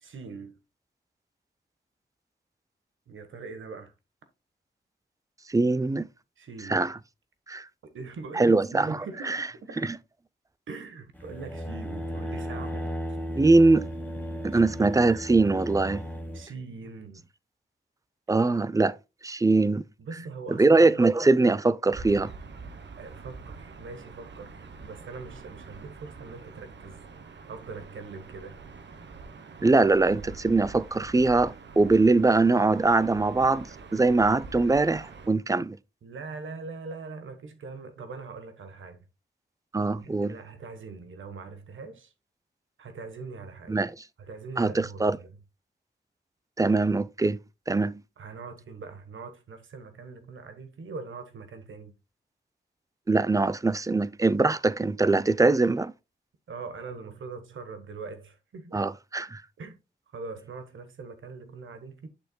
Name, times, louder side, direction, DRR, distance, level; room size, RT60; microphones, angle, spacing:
voice 1, 0.0-0.6 3.1-3.9 6.4-6.8 7.8-9.9 10.7-13.2 14.5-14.9 16.3-17.3 20.0-21.0 23.0-27.0 27.5-28.6 36.0-39.1 40.0-42.1 42.8-43.8 44.2-45.4 48.2-51.9 56.5-58.8 59.6-59.8 60.1-62.1, right 4 dB, 80° right, 1.3 m, -42 dB
voice 2, 5.5-6.1 6.7-6.9 7.5-7.6 8.4-8.9 9.3-9.4 13.3-13.9 14.4-16.0 18.3-19.0 19.2-19.8 20.6-22.3 29.6-35.8 39.7-40.3 43.7-43.9 44.6-45.2 46.6-47.4 47.7-48.0 53.1-55.9 58.7-59.4, right 3 dB, 15° right, 0.5 m, -22 dB
sound 1, 11.1-16.5, equal, 10° left, 1.5 m, -35 dB
Gull seagull / Ocean, 21.9-35.3, right 4 dB, 65° right, 1.0 m, -45 dB
8.0 x 6.5 x 2.2 m
cardioid pair, 50°, 20 cm